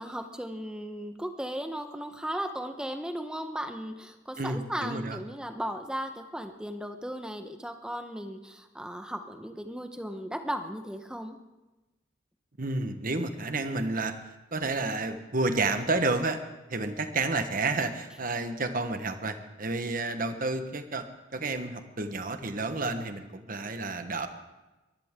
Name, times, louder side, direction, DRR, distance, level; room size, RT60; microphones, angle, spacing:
voice 1, 0.0-11.4, equal, 5° right, 6 dB, 1.0 m, -36 dB
voice 2, 4.4-5.2 12.6-14.1 14.5-16.4 16.7-21.0 21.3-24.3, right 3 dB, 45° right, 8 dB, 1.2 m, -30 dB
22.5 x 15.5 x 3.7 m, 1.1 s
head